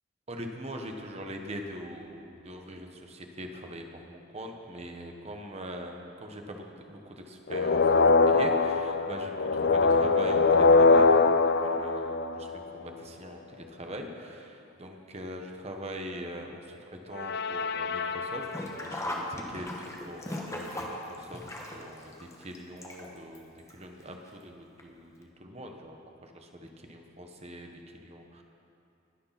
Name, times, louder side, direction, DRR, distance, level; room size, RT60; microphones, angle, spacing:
voice 1, 0.3-28.4, equal, 35° right, 3 dB, 1.2 m, -42 dB
sound 1, 7.5-12.8 17.1-18.8, left 3 dB, 60° left, 0.5 m, -23 dB
Sink (filling or washing), 18.4-23.4 23.7-23.8 24.8-24.9 25.2-25.3, left 1 dB, 15° left, 1.2 m, -38 dB
20.0 x 6.7 x 5.8 m, 2.9 s
head